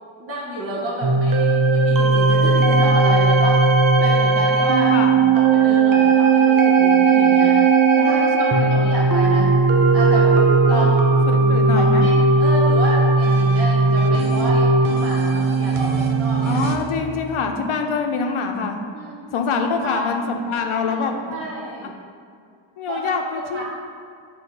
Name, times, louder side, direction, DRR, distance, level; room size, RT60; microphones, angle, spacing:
voice 1, 0.2-3.7 4.0-5.0 5.3-7.6 7.9-9.5 9.9-10.3 10.7-11.1 11.7-16.6 18.9-19.2 19.8-20.0 20.8-21.9 22.9-23.6, right 1 dB, 30° right, -5 dB, 0.9 m, -29 dB
sound 1, 1.0-16.8, right 4 dB, 45° right, 0.6 m, -17 dB
voice 2, 7.9-8.8 10.7-10.9 11.3-12.1 16.4-18.8 19.3-21.2 22.8-23.6, left 5 dB, 80° left, 4 dB, 0.8 m, -25 dB
7.8 x 3.0 x 5.3 m, 2.3 s
wide cardioid pair, 150°, 49 cm